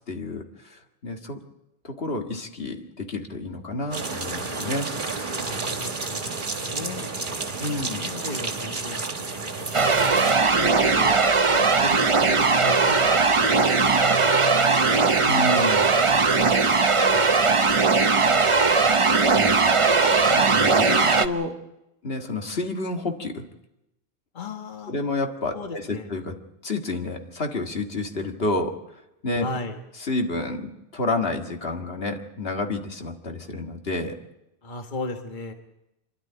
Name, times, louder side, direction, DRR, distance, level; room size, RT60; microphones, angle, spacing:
voice 1, 0.1-1.4 1.8-4.9 7.6-8.0 15.3-15.9 19.3-19.6 20.4-21.6 22.0-23.5 24.9-26.3 26.6-28.8 29.2-29.5 30.0-34.2, left 2 dB, 75° left, 3 dB, 2.1 m, -29 dB
sound 1, 3.9-10.4, right 3 dB, 55° right, 1.6 m, -31 dB
voice 2, 5.4-6.2 6.5-7.3 7.8-10.1 10.5-11.2 11.5-13.1 13.4-13.6 16.1-16.8 17.1-18.1 18.5-19.0 24.3-24.9 25.5-26.1 29.4-29.8 34.6-35.5, left 2 dB, 50° left, 4 dB, 1.6 m, -37 dB
sound 2, 9.7-21.3, right 4 dB, 35° right, 0.8 m, -19 dB
27.0 x 12.0 x 10.0 m, 0.91 s
omnidirectional pair, 1.0 m